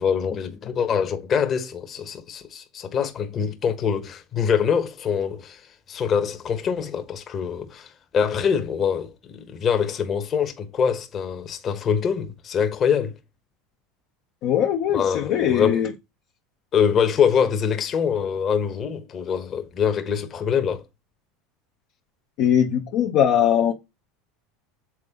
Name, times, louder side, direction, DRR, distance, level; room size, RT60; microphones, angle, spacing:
voice 1, 0.0-5.6 5.9-13.1 14.9-15.8 16.7-20.8, left 7 dB, 35° left, 1.3 m, -24 dB
voice 2, 14.4-15.9 22.4-23.7, left 9 dB, 60° left, 1.0 m, -21 dB
7.5 x 3.9 x 3.8 m
supercardioid pair, 115°, 0 cm